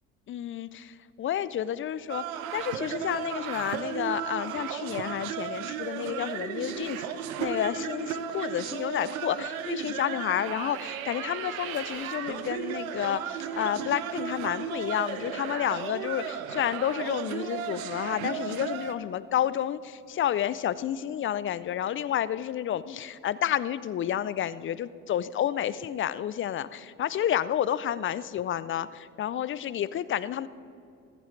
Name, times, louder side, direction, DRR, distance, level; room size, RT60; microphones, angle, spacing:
voice 1, 0.3-2.2 2.5-7.1 7.4-30.5, left 10 dB, 30° left, 17 dB, 0.4 m, -30 dB
sound 1, 2.1-18.9, right 9 dB, 85° right, 0.8 m, -35 dB
14.5 x 14.5 x 3.3 m, 2.5 s
hypercardioid pair, 70°, 40 cm